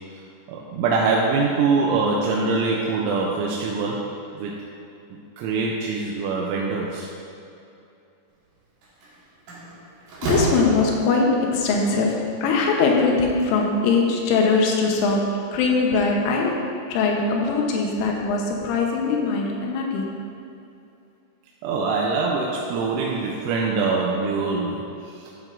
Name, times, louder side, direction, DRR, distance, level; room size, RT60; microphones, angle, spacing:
voice 1, 0.5-4.6 5.1-7.1 21.6-25.3, right 4 dB, 85° right, -3 dB, 3.1 m, -24 dB
Slam, 8.8-9.1 9.5-11.3, right 2 dB, 60° right, 2.4 m, -28 dB
voice 2, 10.2-20.1, left 4 dB, 90° left, 0 dB, 3.5 m, -21 dB
11.0 x 7.5 x 2.6 m, 2.7 s
omnidirectional pair, 5.5 m